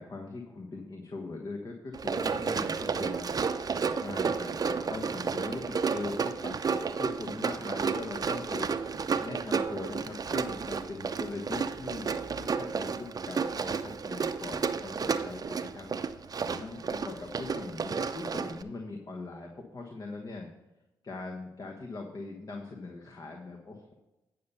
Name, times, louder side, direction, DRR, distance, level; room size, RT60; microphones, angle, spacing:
voice 1, 0.0-15.9 16.4-20.5 21.0-23.9, left 3 dB, 45° left, 1 dB, 1.3 m, -41 dB
Run, 1.9-18.6, right 5 dB, 45° right, 0.6 m, -32 dB
9.4 x 5.6 x 5.6 m, 1.0 s
hypercardioid pair, 45°, 9 cm